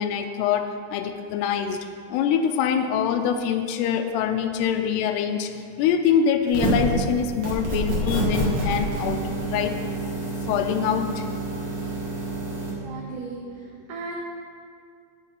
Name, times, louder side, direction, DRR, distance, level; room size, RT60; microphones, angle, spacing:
voice 1, 0.0-1.8 2.1-5.5 5.8-9.8 10.5-11.2, left 8 dB, 85° left, 6 dB, 2.7 m, -24 dB
sound 1, 6.5-6.9 7.4-12.7, right 2 dB, 50° right, 1.9 m, -28 dB
voice 2, 12.8-14.1, right 3 dB, 90° right, -2 dB, 1.8 m, -36 dB
8.4 x 7.9 x 4.5 m, 2.2 s
omnidirectional pair, 4.7 m